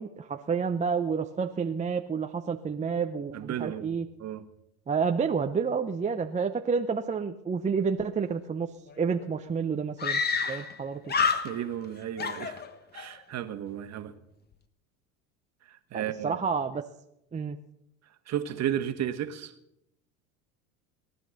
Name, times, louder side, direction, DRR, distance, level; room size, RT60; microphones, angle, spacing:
voice 1, 0.0-4.1 4.9-8.7 9.0-10.2 10.5-11.1 15.9-16.8 17.3-17.6, right 5 dB, 15° right, 6 dB, 0.7 m, -29 dB
voice 2, 3.3-4.4 10.4-10.7 11.2-12.6 12.9-14.1 15.6-16.4 18.3-19.5, right 10 dB, 40° right, 9 dB, 1.5 m, -34 dB
Screaming, 8.9-9.0 9.2-9.3 10.0-10.8 11.1-11.9 12.2-13.1, left 5 dB, 25° left, 1.2 m, -28 dB
18.5 x 10.5 x 6.5 m, 0.83 s
supercardioid pair, 100°, 41 cm